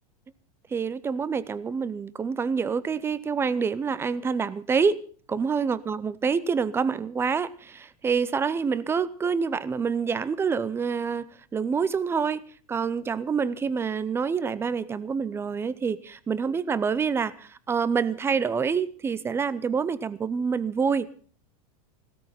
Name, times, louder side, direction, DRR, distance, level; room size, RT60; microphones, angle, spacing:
voice 1, 0.7-5.0 5.3-12.4 12.7-21.1, right 5 dB, 10° right, 19 dB, 0.7 m, -27 dB
16.5 x 13.0 x 5.7 m, 0.43 s
supercardioid pair, 150°, 20 cm